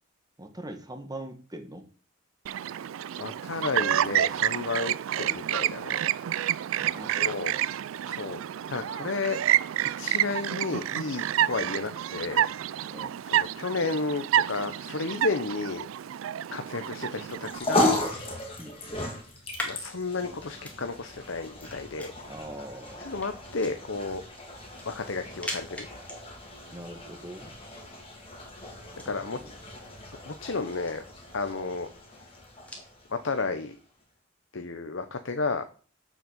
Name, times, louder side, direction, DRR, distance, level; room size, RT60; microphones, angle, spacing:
voice 1, 0.4-1.8 6.8-7.5 12.9-13.2 18.6-19.0 22.3-23.1 26.7-27.5 29.0-29.5, right 1 dB, 20° right, 6 dB, 1.7 m, -42 dB
Chirp tweet, 2.5-17.6, right 11 dB, 90° right, 0.3 m, -29 dB
voice 2, 3.2-6.1 7.2-7.5 8.0-8.4 8.7-9.4 10.0-12.5 13.3-15.9 16.5-18.4 19.6-22.1 23.0-24.2 24.8-25.9 29.0-29.4 30.3-31.0 31.3-31.9 33.1-33.8 34.5-35.6, left 3 dB, 70° left, 8 dB, 0.9 m, -32 dB
sound 1, 17.1-32.9, left 1 dB, 5° left, 2.3 m, -46 dB
sound 2, 17.3-33.8, left 1 dB, 30° left, 2.8 m, -35 dB
7.8 x 6.4 x 7.0 m, 0.39 s
head